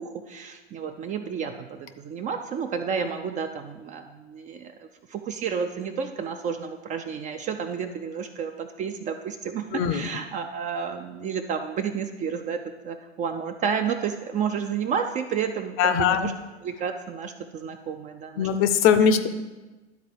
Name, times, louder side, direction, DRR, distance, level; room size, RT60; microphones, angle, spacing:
voice 1, 0.0-16.3 16.6-18.5, right 6 dB, 25° right, 7 dB, 0.4 m, -31 dB
voice 2, 15.8-16.3 18.4-19.3, left 7 dB, 40° left, 10 dB, 0.6 m, -20 dB
11.5 x 4.0 x 4.7 m, 1.2 s
figure-of-eight pair, 90°, 33 cm